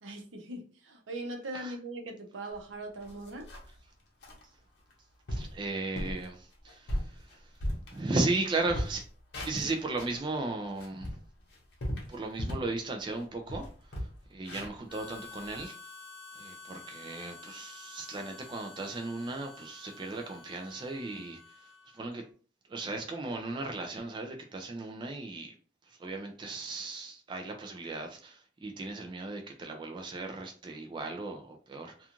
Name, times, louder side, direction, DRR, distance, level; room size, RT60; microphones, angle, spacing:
voice 1, 0.0-3.5, right 2 dB, 80° right, 0.6 m, -40 dB
sound 1, 2.5-2.6 3.0-3.8 4.2-4.4 4.9-5.0 5.3-5.6 6.0-6.2 6.7-8.4 8.6-10.2 10.6-12.8 13.1-13.2 13.5-15.6, equal, 60° left, 0.8 m, -37 dB
voice 2, 5.3-7.5 7.9-9.0 9.5-11.1 12.1-15.9 16.3-22.2 22.7-25.5 25.9-32.1, right 2 dB, 25° right, 0.3 m, -36 dB
Harmonica, 14.9-22.2, left 4 dB, 5° right, 0.8 m, -50 dB
2.4 x 2.3 x 2.8 m
head